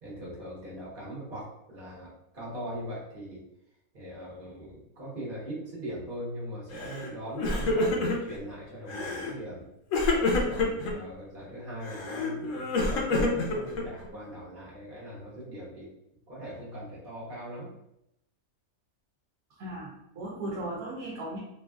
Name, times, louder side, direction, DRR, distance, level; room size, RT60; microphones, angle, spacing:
voice 1, 0.0-3.4 3.9-9.6 10.3-15.9 16.3-17.7, equal, 40° right, -6 dB, 1.0 m, -40 dB
Crying sobbing, 6.8-7.1 7.3-8.4 8.9-9.3 9.9-10.9 11.8-14.1, left 2 dB, 65° left, 0.9 m, -28 dB
voice 2, 19.6-21.4, right 1 dB, 75° right, -4 dB, 1.1 m, -36 dB
3.3 x 2.4 x 2.3 m, 0.80 s
omnidirectional pair, 1.6 m